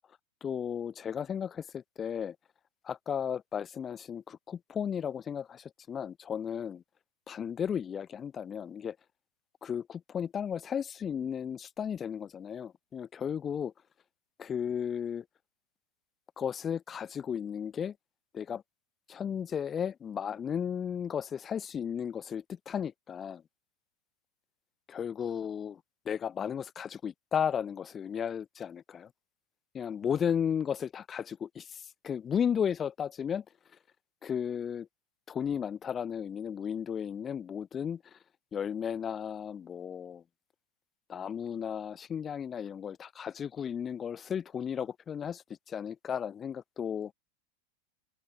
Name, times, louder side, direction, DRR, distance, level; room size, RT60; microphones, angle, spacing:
voice 1, 0.4-2.4 2.8-6.8 7.3-9.0 9.6-13.7 14.4-15.3 16.4-18.0 18.3-18.6 19.1-23.4 24.9-25.8 26.1-29.1 29.7-33.4 34.2-34.9 35.3-38.2 38.5-40.2 41.1-47.1, left 8 dB, 25° left, 0.4 m, -34 dB
open air
hypercardioid pair, 110°, 0 cm